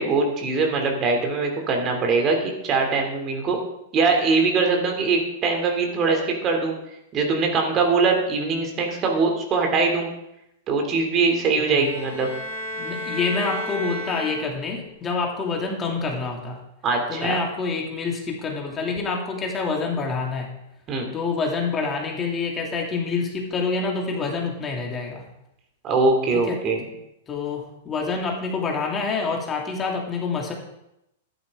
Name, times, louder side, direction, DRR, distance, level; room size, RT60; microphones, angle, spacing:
voice 1, 0.0-3.6 3.9-6.7 7.1-10.1 10.7-12.3 16.8-17.4 20.9-21.1 25.8-26.8, right 4 dB, 30° right, 2 dB, 2.9 m, -22 dB
sound 1, 11.6-14.9, left 1 dB, 60° left, 3.8 m, -33 dB
voice 2, 12.8-16.6 17.1-20.5 21.1-25.3 26.5-26.6 27.3-30.5, left 4 dB, 20° left, 0 dB, 2.6 m, -27 dB
14.0 x 11.0 x 3.7 m, 0.84 s
figure-of-eight pair, 100°, 0 cm